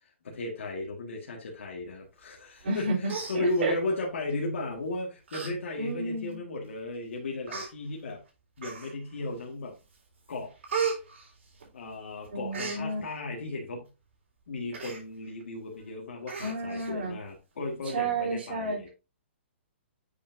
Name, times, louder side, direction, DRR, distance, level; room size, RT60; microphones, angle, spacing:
voice 1, 0.2-8.2 8.6-9.7 10.3-10.5 11.7-13.9 14.5-18.9, left 2 dB, 75° left, -1 dB, 1.6 m, -35 dB
voice 2, 2.6-3.7 5.8-6.4 12.3-13.0 16.4-17.2 17.9-18.9, right 2 dB, 55° right, -1 dB, 3.4 m, -31 dB
Human voice, 2.6-2.8 3.1-4.0 4.7-4.9 5.3-5.5 5.9-6.0 6.8-6.9 7.5-7.7 8.6-9.1 9.6-10.0 10.3-12.0 12.2-12.8 14.7-15.0 15.4-15.5 15.8-15.9 16.3-16.9 17.3-17.4, right 5 dB, 75° right, 3.7 m, -35 dB
8.3 x 5.1 x 2.6 m, 0.30 s
hypercardioid pair, 175°, 7 cm